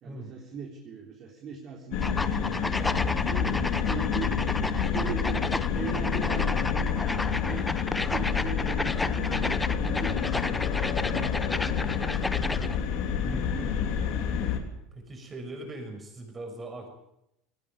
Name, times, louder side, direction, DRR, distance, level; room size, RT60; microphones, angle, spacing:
voice 1, 0.0-2.2 2.6-5.5 5.7-7.0 7.4-12.7 13.1-14.3, right 5 dB, 35° right, 0 dB, 3.7 m, -40 dB
sound 1, 1.9-14.6, left 7 dB, 55° left, 3.6 m, -28 dB
sound 2, 2.0-12.8, left 2 dB, 5° left, 0.7 m, -32 dB
voice 2, 14.9-16.9, right 2 dB, 20° right, 4 dB, 6.3 m, -40 dB
19.0 x 19.0 x 9.0 m, 0.82 s
cardioid pair, 155°, 0 cm